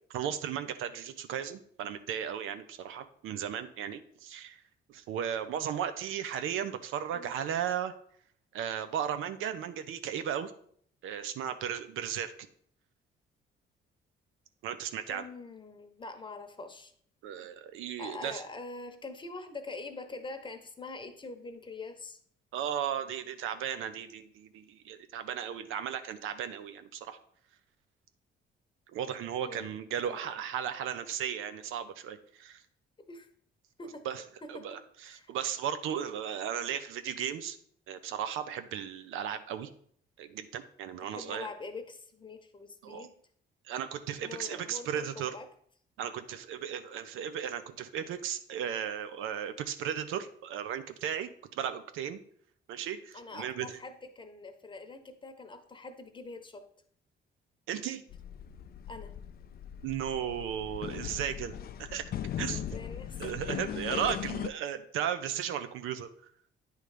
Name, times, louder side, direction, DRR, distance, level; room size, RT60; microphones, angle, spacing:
voice 1, 0.1-4.6 4.9-7.9 8.5-10.5 11.0-12.3 14.6-15.3 17.2-18.4 22.5-27.2 28.9-32.6 34.0-34.2 34.5-34.8 35.1-37.6 37.9-39.7 40.2-41.5 42.8-43.1 43.7-45.4 46.0-52.2 52.7-53.7 57.7-58.0 59.8-62.1 62.4-62.6 63.2-66.1, right 9 dB, 90° right, 10 dB, 0.6 m, -35 dB
voice 2, 15.1-16.9 18.0-22.2 29.4-29.7 30.1-30.4 33.0-33.3 33.8-34.0 34.4-35.3 41.0-43.1 44.2-45.5 53.1-56.7 58.9-59.1 62.6-63.6, left 3 dB, 25° left, 7 dB, 0.9 m, -44 dB
sound 1, 58.1-64.5, left 10 dB, 50° left, 0.4 m, -39 dB
9.2 x 3.3 x 4.9 m, 0.62 s
cardioid pair, 90°, 20 cm